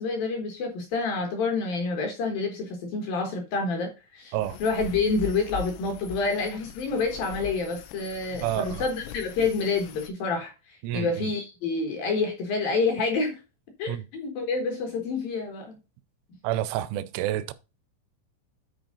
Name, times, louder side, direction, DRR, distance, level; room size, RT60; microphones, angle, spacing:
voice 1, 0.0-13.4 13.8-15.8, left 4 dB, 70° left, 2.3 m, -28 dB
sound 1, 4.4-10.1, left 9 dB, 90° left, 3.5 m, -41 dB
voice 2, 8.4-8.9 10.8-11.3 13.9-14.0 16.4-17.5, right 13 dB, 80° right, 2.9 m, -29 dB
10.0 x 4.6 x 3.8 m
omnidirectional pair, 5.8 m